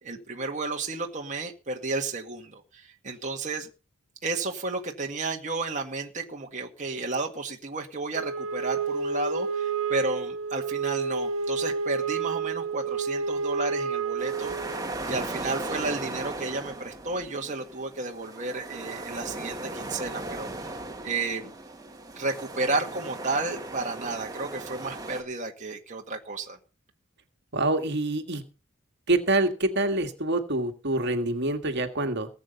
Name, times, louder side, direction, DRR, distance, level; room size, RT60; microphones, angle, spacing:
voice 1, 0.0-3.7 4.2-20.5 21.0-21.5 22.2-26.6, right 3 dB, 35° right, 2 dB, 1.8 m, -32 dB
Wind instrument woodwind instrument, 8.1-14.9, right 5 dB, 75° right, 1.0 m, -30 dB
sound 1, 14.2-25.2, right 2 dB, 20° right, 2.3 m, -37 dB
voice 2, 27.5-28.4 29.1-32.3, right 2 dB, 55° right, 6 dB, 2.0 m, -26 dB
19.0 x 8.7 x 5.4 m, 0.33 s
head